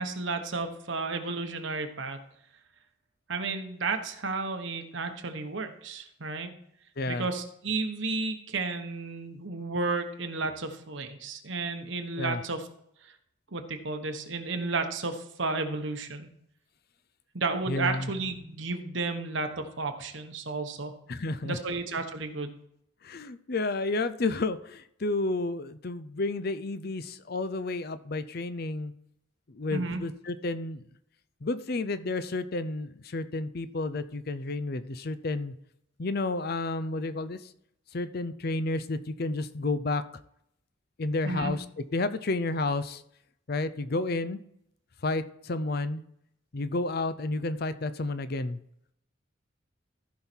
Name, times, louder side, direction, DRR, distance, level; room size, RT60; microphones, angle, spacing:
voice 1, 0.0-2.2 3.3-6.5 7.1-12.6 13.0-13.1 13.5-16.3 17.3-20.9 21.4-22.5 29.7-30.0 41.2-41.5, right 3 dB, 65° right, 6 dB, 1.2 m, -32 dB
voice 2, 7.0-7.3 12.2-12.4 17.7-18.1 21.1-21.6 23.0-28.9 29.5-30.8 31.4-35.5 36.0-37.5 37.9-40.0 41.0-41.6 41.9-43.0 43.5-44.4 45.0-46.0 46.5-48.6, left 2 dB, 50° left, 13 dB, 0.6 m, -31 dB
14.5 x 5.6 x 4.5 m, 0.73 s
head